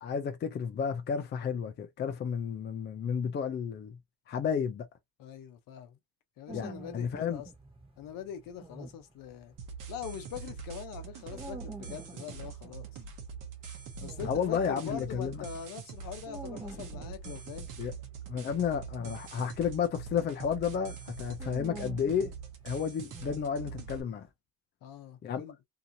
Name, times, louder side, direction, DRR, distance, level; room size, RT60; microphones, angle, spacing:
voice 1, 0.0-4.0 4.3-4.9 6.5-7.4 14.2-15.4 17.8-17.9 18.3-22.3 22.6-24.3 25.2-25.4, left 7 dB, 30° left, 0.4 m, -32 dB
voice 2, 5.2-6.0 6.4-7.5 8.0-9.5 9.9-13.0 14.0-17.6 24.8-25.6, left 8 dB, 60° left, 0.8 m, -43 dB
sound 1, 6.5-15.1 15.6-24.0, right 2 dB, 15° right, 1.2 m, -48 dB
sound 2, 9.6-24.0, right 6 dB, 55° right, 1.0 m, -44 dB
2.8 x 2.5 x 2.7 m
cardioid pair, 125°, 38 cm